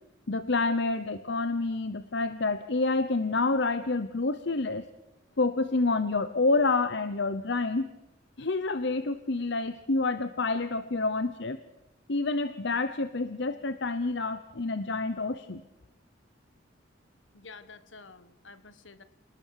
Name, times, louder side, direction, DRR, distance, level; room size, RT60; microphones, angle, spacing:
voice 1, 0.3-4.9 5.4-7.9 8.4-11.6 12.1-15.6, left 3 dB, 65° left, 11 dB, 1.0 m, -28 dB
voice 2, 17.3-19.0, left 4 dB, 80° left, 13 dB, 1.6 m, -50 dB
28.0 x 19.5 x 6.6 m, 0.92 s
head